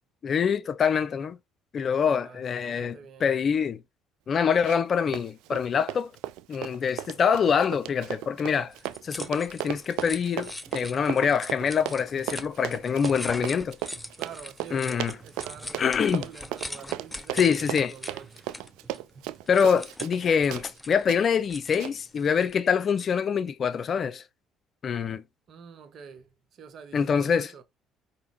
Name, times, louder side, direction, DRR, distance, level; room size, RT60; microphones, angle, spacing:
voice 1, 0.2-1.4 1.7-3.8 4.3-6.1 6.5-8.7 9.0-13.8 14.7-15.2 15.8-16.2 17.3-17.9 19.5-24.2 24.8-25.2 26.9-27.5, left 7 dB, 50° left, 0.6 m, -25 dB
voice 2, 2.1-3.3 14.2-18.8 19.1-19.3 25.5-27.6, right 7 dB, 55° right, 0.9 m, -47 dB
Run, 4.6-4.9 5.1-20.2 20.5-20.7 21.1-21.2 21.8-21.9, right 14 dB, 75° right, 0.3 m, -35 dB
sound 1, 8.7-22.6, left 2 dB, 10° left, 0.7 m, -42 dB
sound 2, 10.3-14.4 15.2-16.8 17.4-18.9, right 4 dB, 15° right, 1.9 m, -55 dB
5.0 x 2.8 x 2.9 m
hypercardioid pair, 60°, 0 cm